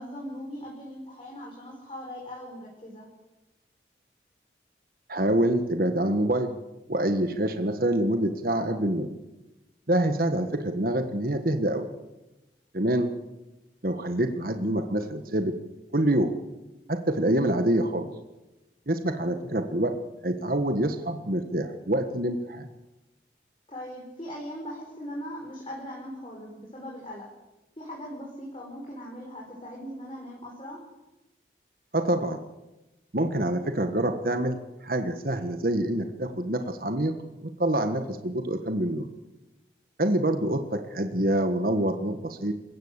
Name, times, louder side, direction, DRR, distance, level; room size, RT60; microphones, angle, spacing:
voice 1, 0.0-3.1 23.7-27.3 27.8-30.8, equal, 30° left, -2 dB, 5.6 m, -39 dB
voice 2, 5.1-6.5 6.9-9.1 9.9-11.9 12.7-13.1 13.8-15.5 15.9-16.3 16.9-18.1 18.9-20.0 20.2-22.7 31.9-32.4 33.1-37.1 37.4-39.1 40.0-42.5, right 1 dB, 55° right, 6 dB, 1.6 m, -26 dB
28.5 x 16.5 x 8.3 m, 1.0 s
head